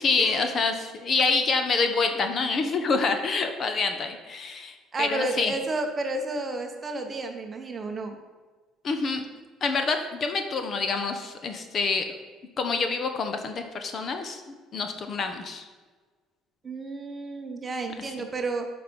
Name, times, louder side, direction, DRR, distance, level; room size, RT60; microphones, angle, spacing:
voice 1, 0.0-5.5 8.8-9.2 9.6-12.0 12.6-14.4 14.7-15.7, left 4 dB, 35° left, 6 dB, 0.9 m, -27 dB
voice 2, 4.9-8.2 16.6-18.7, right 2 dB, 25° right, 4 dB, 1.0 m, -31 dB
9.3 x 5.2 x 5.3 m, 1.4 s
cardioid pair, 145°, 0 cm